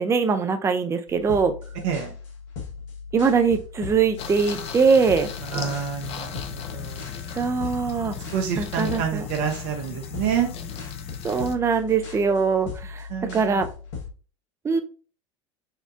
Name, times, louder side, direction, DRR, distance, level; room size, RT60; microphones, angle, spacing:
voice 1, 0.0-1.5 3.1-5.3 7.3-8.1 8.6-9.3 11.2-13.7 14.6-14.8, right 5 dB, 15° right, 8 dB, 0.4 m, -22 dB
sound 1, 1.1-14.1, left 5 dB, 65° left, 1.1 m, -38 dB
sound 2, 4.2-11.6, left 8 dB, 40° left, 0.5 m, -37 dB
voice 2, 5.5-7.1 8.3-10.5 13.1-13.7, right 8 dB, 60° right, 3 dB, 0.8 m, -28 dB
4.4 x 2.2 x 2.5 m, 0.37 s
hypercardioid pair, 80°, 16 cm